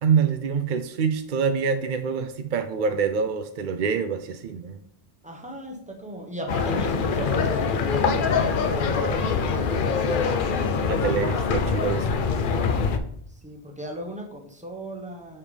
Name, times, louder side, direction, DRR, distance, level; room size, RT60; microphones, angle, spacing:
voice 1, 0.0-4.8 10.9-12.2, right 6 dB, 60° right, 8 dB, 0.6 m, -25 dB
voice 2, 5.2-10.3 13.4-15.4, right 1 dB, 5° right, 1 dB, 0.9 m, -37 dB
sound 1, 6.5-13.0, left 5 dB, 60° left, 0.7 m, -24 dB
6.7 x 5.5 x 3.3 m, 0.65 s
omnidirectional pair, 1.1 m